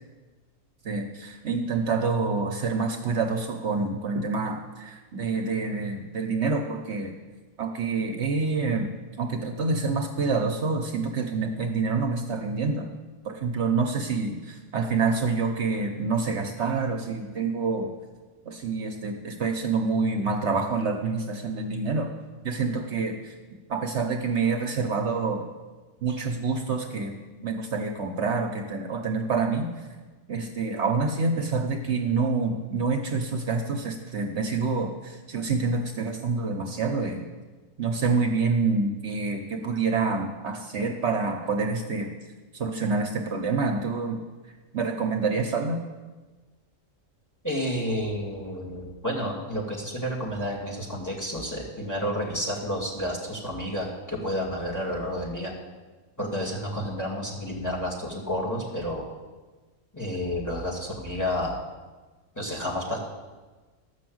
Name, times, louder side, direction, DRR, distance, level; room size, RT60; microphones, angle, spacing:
voice 1, 0.8-7.1 7.6-8.9 9.2-12.9 13.2-17.9 18.4-22.1 22.4-23.3 23.7-25.4 26.0-27.1 27.4-29.9 30.3-37.3 37.8-42.1 42.5-44.2 44.7-45.8, right 4 dB, 60° right, 3 dB, 1.1 m, -27 dB
voice 2, 47.4-55.5 56.2-59.1 59.9-61.6 62.3-63.0, equal, 15° left, -2 dB, 2.3 m, -30 dB
12.5 x 6.1 x 7.8 m, 1.3 s
omnidirectional pair, 1.4 m